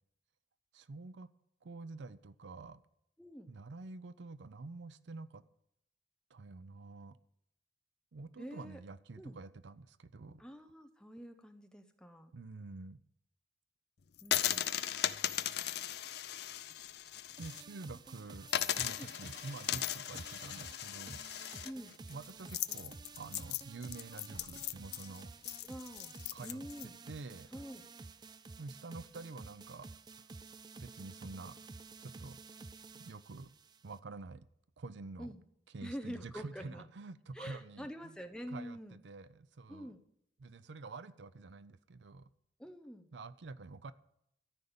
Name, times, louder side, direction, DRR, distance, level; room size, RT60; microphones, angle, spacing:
voice 1, 0.7-1.3 1.6-2.8 3.5-5.4 6.3-7.2 8.1-10.4 12.3-13.0 17.4-18.5 18.8-21.2 22.1-25.3 26.3-27.5 28.6-29.9 30.2-30.3 30.8-31.6 32.0-32.4 32.9-33.5 33.8-34.5 34.8-35.3 35.7-38.2 38.5-39.9 40.4-42.3 43.1-43.9, right 3 dB, 80° right, 15 dB, 0.5 m, -48 dB
voice 2, 3.2-3.5 8.4-8.8 9.2-9.4 10.4-12.3 14.2-14.7 19.0-19.1 21.6-22.0 25.6-26.1 26.4-26.9 27.5-27.8 35.2-35.4 35.8-36.9 37.3-39.0 39.7-40.0 42.6-43.1, equal, 5° left, 7 dB, 0.7 m, -46 dB
sound 1, 14.2-17.6 18.0-18.1 18.5-26.8, left 11 dB, 65° left, 0.5 m, -37 dB
sound 2, 17.4-34.0, right 4 dB, 25° right, 0.4 m, -52 dB
13.5 x 5.3 x 8.8 m, 0.77 s
head